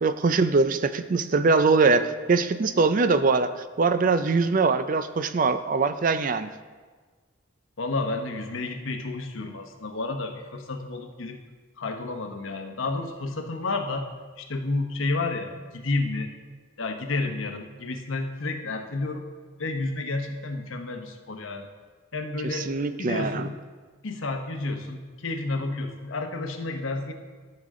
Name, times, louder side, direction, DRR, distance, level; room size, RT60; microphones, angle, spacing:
voice 1, 0.0-6.5 22.5-23.5, right 4 dB, 40° right, 11 dB, 0.4 m, -22 dB
voice 2, 7.8-11.4 11.8-14.1 14.4-16.3 16.8-19.3 19.6-21.7 22.1-22.7 23.0-23.5 24.0-27.1, left 3 dB, 75° left, 5 dB, 1.0 m, -31 dB
13.0 x 6.7 x 3.7 m, 1.4 s
head